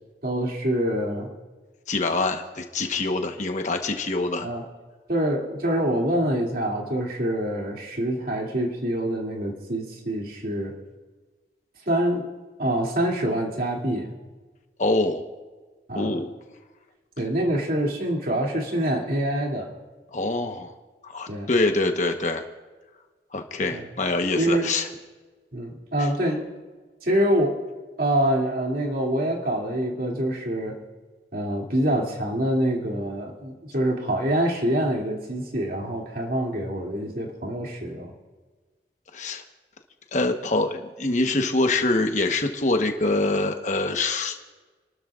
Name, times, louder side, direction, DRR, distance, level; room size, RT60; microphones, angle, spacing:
voice 1, 0.2-1.3 4.4-4.6 5.1-10.7 11.9-12.3 12.6-14.1 15.9-16.2 17.2-19.7 21.3-21.5 23.7-23.8 24.4-24.7 25.5-26.5 27.0-27.6 28.0-30.8 31.3-38.1, right 1 dB, 55° right, -1 dB, 2.6 m, -25 dB
voice 2, 1.9-4.5 14.8-15.2 15.9-16.3 20.1-20.7 21.0-22.4 23.3-24.9 26.0-26.1 39.1-39.4 40.1-44.4, left 2 dB, 45° left, 5 dB, 1.1 m, -25 dB
29.5 x 13.0 x 2.5 m, 1.3 s
head